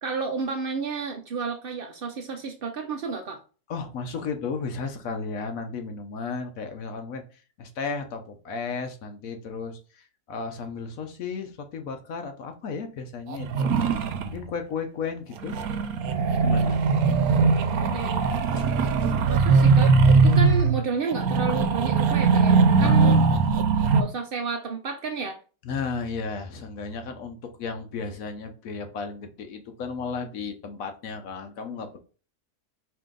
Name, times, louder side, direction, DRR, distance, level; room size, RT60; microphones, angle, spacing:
voice 1, 0.0-3.4 17.9-18.3 19.3-23.2 23.9-25.4, right 5 dB, 85° right, 0.4 m, -31 dB
voice 2, 3.7-15.6 16.4-16.8 18.6-18.7 22.8-23.6 25.6-32.0, left 5 dB, 65° left, 1.1 m, -34 dB
sound 1, 13.3-14.4 15.4-24.0, right 4 dB, 70° right, 1.0 m, -20 dB
4.9 x 2.8 x 3.7 m
omnidirectional pair, 1.7 m